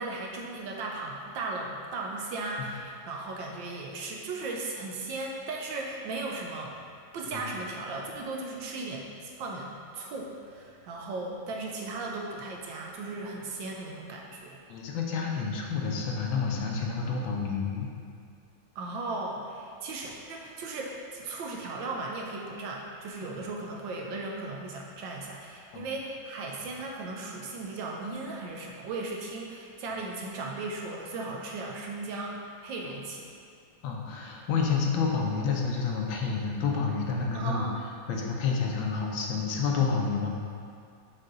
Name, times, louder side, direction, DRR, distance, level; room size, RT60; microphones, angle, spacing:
voice 1, 0.0-6.8 7.1-14.6 18.8-32.4 32.6-33.3 37.3-37.8, right 3 dB, 75° right, -1 dB, 1.2 m, -36 dB
voice 2, 14.7-17.9 25.7-25.9 33.8-37.7 38.1-40.3, left 5 dB, 75° left, 0 dB, 1.4 m, -29 dB
6.5 x 4.2 x 3.8 m, 2.3 s
omnidirectional pair, 2.3 m